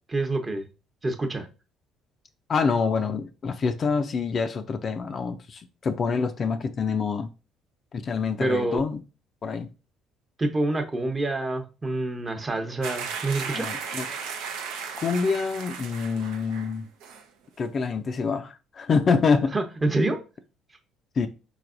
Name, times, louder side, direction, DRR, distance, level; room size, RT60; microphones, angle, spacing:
voice 1, 0.1-0.6 1.0-1.5 8.4-8.8 10.4-13.7 19.5-20.2, right 2 dB, 25° right, 0.9 m, -27 dB
voice 2, 2.5-7.3 7.9-9.0 9.4-9.7 13.5-14.1 15.0-16.9 17.6-19.5 21.2-21.3, left 5 dB, 45° left, 0.4 m, -26 dB
sound 1, 12.8-16.7 17.0-17.2, right 6 dB, 75° right, 0.6 m, -35 dB
4.1 x 3.3 x 2.5 m
hypercardioid pair, 55°, 0 cm